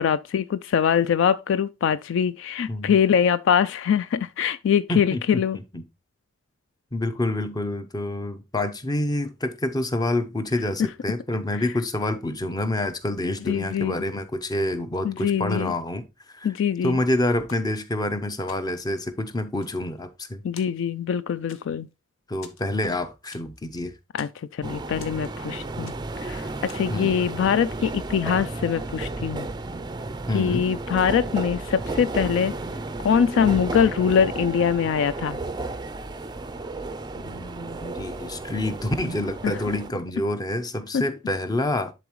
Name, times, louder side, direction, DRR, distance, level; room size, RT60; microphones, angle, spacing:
voice 1, 0.0-5.6 13.5-14.1 15.0-15.7 16.4-17.0 20.4-21.9 24.1-29.5 30.3-32.5 33.0-35.4 39.4-39.5 40.9-41.0, left 7 dB, 65° left, 0.3 m, -23 dB
voice 2, 4.9-5.4 5.7-5.8 6.9-16.5 16.8-20.4 22.3-23.9 26.9-27.4 30.3-30.7 37.1-41.9, left 1 dB, 20° left, 0.7 m, -27 dB
sound 1, 17.5-18.2 18.5-19.0 19.4-20.3 20.6-21.1 21.5-21.9 22.4-23.7 24.0-24.4 25.0-25.5 25.9-26.2 26.7-27.0, left 6 dB, 80° left, 1.0 m, -49 dB
sound 2, 24.6-39.9, right 2 dB, 20° right, 0.4 m, -33 dB
10.5 x 4.1 x 3.0 m
head